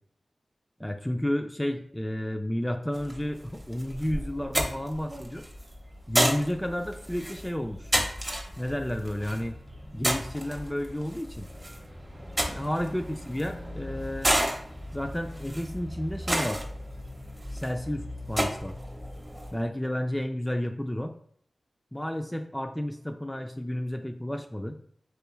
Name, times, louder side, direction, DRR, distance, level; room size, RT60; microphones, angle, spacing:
voice 1, 0.8-5.4 6.1-7.9 8.6-9.5 9.9-11.5 12.4-14.4 14.9-16.6 17.5-18.8 19.5-21.1 21.9-24.8, left 1 dB, 10° left, 4 dB, 0.4 m, -31 dB
sound 1, 2.9-19.6, equal, 20° right, 0.7 m, -32 dB
3.4 x 3.0 x 3.1 m, 0.63 s
cardioid pair, 45°, 0 cm